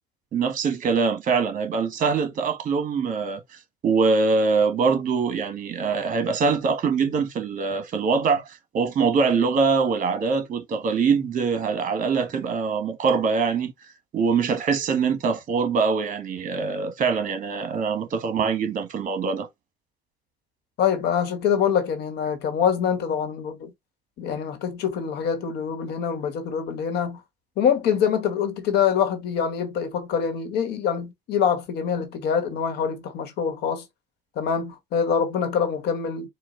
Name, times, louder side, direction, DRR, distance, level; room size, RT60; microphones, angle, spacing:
voice 1, 0.3-3.4 3.8-13.7 14.1-19.5, right 5 dB, 50° right, 1.2 m, -23 dB
voice 2, 20.8-23.7 24.2-27.2 27.6-33.9 34.3-36.3, left 7 dB, 75° left, 1.2 m, -25 dB
4.3 x 2.3 x 3.7 m
cardioid pair, 110°, 17 cm